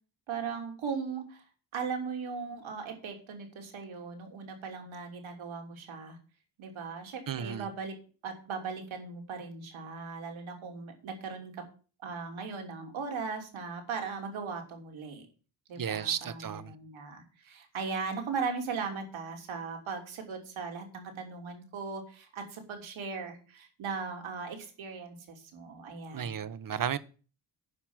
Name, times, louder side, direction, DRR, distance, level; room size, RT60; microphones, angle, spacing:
voice 1, 0.3-1.4 1.7-6.2 6.6-8.0 8.2-11.7 12.0-15.3 15.7-26.4, right 5 dB, 70° right, 3.1 m, -38 dB
voice 2, 7.3-7.7 15.8-16.7 26.1-27.0, right 8 dB, 40° right, 1.0 m, -33 dB
9.8 x 5.8 x 7.4 m
hypercardioid pair, 45°, 50 cm